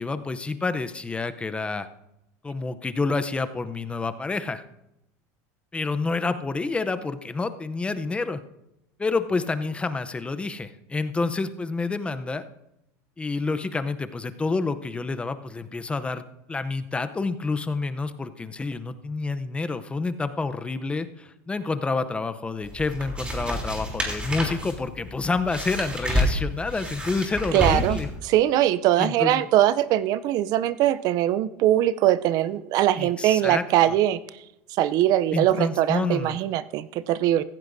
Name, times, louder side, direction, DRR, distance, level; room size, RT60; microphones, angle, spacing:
voice 1, 0.0-1.9 2.4-4.6 5.7-8.4 9.0-12.4 13.2-28.1 29.0-29.5 33.0-33.6 35.3-36.4, left 3 dB, 15° left, 10 dB, 0.7 m, -28 dB
sound 1, 22.6-28.2, equal, 15° right, 3.2 m, -29 dB
voice 2, 27.5-34.2 34.8-37.4, right 13 dB, 50° right, 17 dB, 0.5 m, -22 dB
15.5 x 15.0 x 2.7 m, 0.86 s
supercardioid pair, 125°, 8 cm